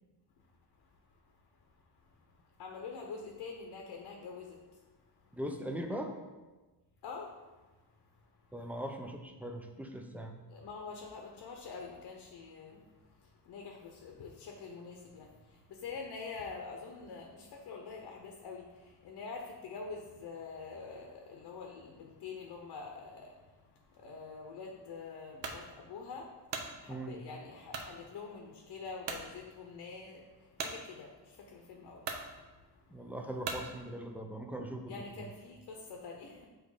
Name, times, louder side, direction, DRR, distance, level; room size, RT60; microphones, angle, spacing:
voice 1, 2.6-4.6 7.0-7.3 10.5-12.8 13.5-23.3 24.0-26.3 26.8-30.2 30.6-32.0 34.9-36.5, left 4 dB, 60° left, 1 dB, 0.9 m, -45 dB
voice 2, 5.3-6.1 8.5-10.3 26.9-27.2 32.9-35.3, right 1 dB, 5° right, 3 dB, 0.6 m, -40 dB
sound 1, 25.4-25.6 26.2-26.7 27.7-27.9 28.5-28.6 29.0-29.3 30.6-30.8 31.6-31.7 32.0-32.3 33.4-33.7, right 5 dB, 80° right, 0.8 m, -38 dB
6.4 x 3.1 x 4.9 m, 1.2 s
cardioid pair, 100°, 43 cm